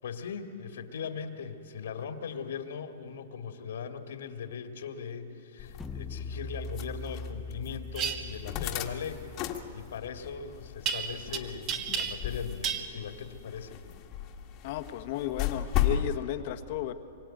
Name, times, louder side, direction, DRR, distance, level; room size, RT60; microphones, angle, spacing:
voice 1, 0.0-14.0, left 6 dB, 80° left, 5 dB, 2.2 m, -39 dB
sound 1, 5.6-16.1, left 10 dB, 30° left, 1.7 m, -36 dB
sound 2, 5.8-11.1, left 3 dB, 5° left, 0.8 m, -43 dB
sound 3, 7.9-8.2 10.9-11.4 11.7-12.3 12.6-12.9, right 7 dB, 25° right, 1.6 m, -31 dB
voice 2, 14.6-16.9, left 13 dB, 45° left, 8 dB, 1.3 m, -34 dB
26.5 x 23.5 x 9.2 m, 2.7 s
hypercardioid pair, 160°, 0 cm